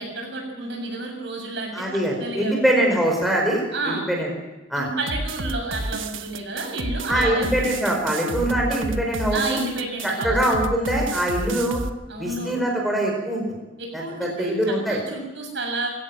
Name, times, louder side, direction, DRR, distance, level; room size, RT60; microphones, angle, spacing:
voice 1, 0.0-1.7 2.2-2.6 3.7-4.1 4.7-7.7 9.3-10.5 12.1-12.6 13.8-14.5 14.9-15.9, right 2 dB, 60° right, 2 dB, 7.3 m, -30 dB
voice 2, 1.7-4.3 4.7-4.9 7.1-9.6 10.2-11.8 12.2-13.4 13.9-15.0, right 1 dB, ahead, -1 dB, 4.9 m, -23 dB
sound 1, 5.1-11.9, right 2 dB, 75° right, 1.3 m, -30 dB
22.0 x 17.0 x 7.5 m, 1.1 s
head